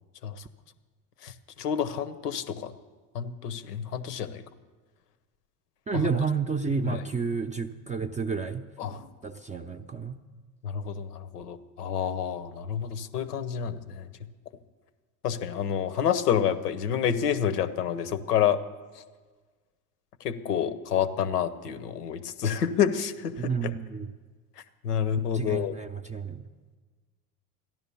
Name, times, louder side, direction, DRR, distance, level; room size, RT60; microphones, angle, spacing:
voice 1, 1.2-2.7 3.1-4.4 6.8-7.0 8.8-9.1 10.6-14.1 15.2-18.6 19.0-19.1 20.2-23.7 24.8-25.7, left 8 dB, 90° left, 14 dB, 1.0 m, -29 dB
voice 2, 5.9-8.7 9.2-10.2 23.4-24.1 25.2-26.4, right 5 dB, 15° right, 5 dB, 0.5 m, -30 dB
14.0 x 11.0 x 7.0 m, 1.4 s
hypercardioid pair, 90°, 45 cm